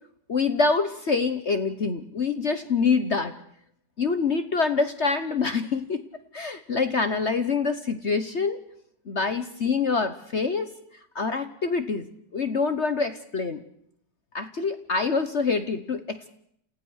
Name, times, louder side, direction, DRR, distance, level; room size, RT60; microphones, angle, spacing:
voice 1, 0.3-3.4 4.0-6.0 6.3-8.6 9.1-10.7 11.1-13.6 14.3-16.3, left 4 dB, 45° left, 10 dB, 1.2 m, -26 dB
29.0 x 16.0 x 6.4 m, 0.70 s
omnidirectional pair, 2.0 m